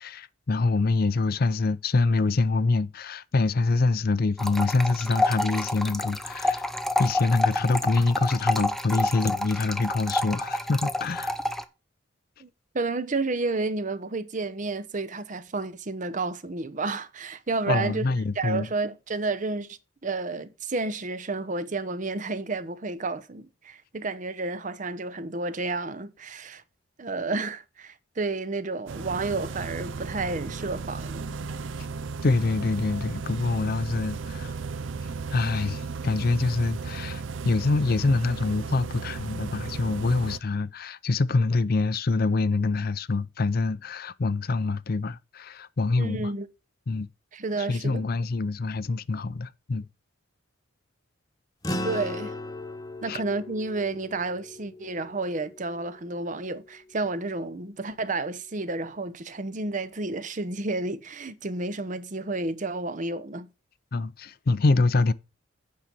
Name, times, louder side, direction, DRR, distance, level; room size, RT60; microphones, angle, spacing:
voice 1, 0.0-6.6 7.0-11.4 17.7-18.7 32.2-34.5 35.0-46.3 46.9-47.1 47.7-49.9 53.1-53.2 63.9-65.1, left 3 dB, 50° left, 0.5 m, -25 dB
sound 1, 4.4-11.6, left 1 dB, ahead, 0.6 m, -28 dB
voice 2, 12.7-18.0 18.4-26.6 27.0-31.4 46.0-46.5 47.3-48.0 51.8-52.3 53.0-63.5, right 3 dB, 40° right, 0.7 m, -31 dB
sound 2, 28.9-40.4, right 4 dB, 70° right, 0.5 m, -35 dB
sound 3, 51.6-56.3, left 1 dB, 20° left, 1.1 m, -37 dB
8.6 x 5.4 x 6.0 m
head